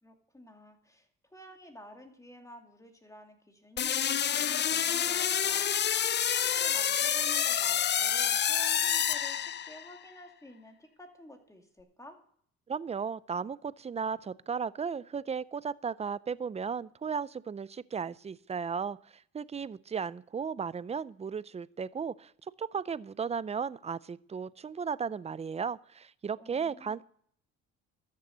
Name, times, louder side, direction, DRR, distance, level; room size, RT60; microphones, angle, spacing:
voice 1, 0.0-5.6 6.2-12.2 26.4-27.0, left 1 dB, 10° left, 4 dB, 2.4 m, -51 dB
sound 1, 3.8-10.0, left 9 dB, 35° left, 0.5 m, -28 dB
voice 2, 12.7-22.3 22.6-27.0, right 6 dB, 20° right, 19 dB, 0.4 m, -35 dB
13.0 x 6.7 x 8.0 m, 0.63 s
cardioid pair, 90°, 30 cm